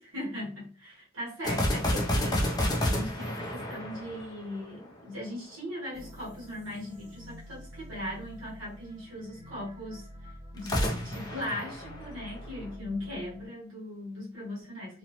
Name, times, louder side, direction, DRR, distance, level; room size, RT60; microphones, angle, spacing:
voice 1, 0.0-2.6 2.8-15.0, left 1 dB, 80° right, -5 dB, 1.5 m, -39 dB
sound 1, 1.4-4.9 10.6-12.7, left 1 dB, 20° left, 0.4 m, -30 dB
sound 2, 5.9-13.5, equal, 35° right, 1.2 m, -48 dB
2.9 x 2.1 x 2.9 m, 0.37 s
head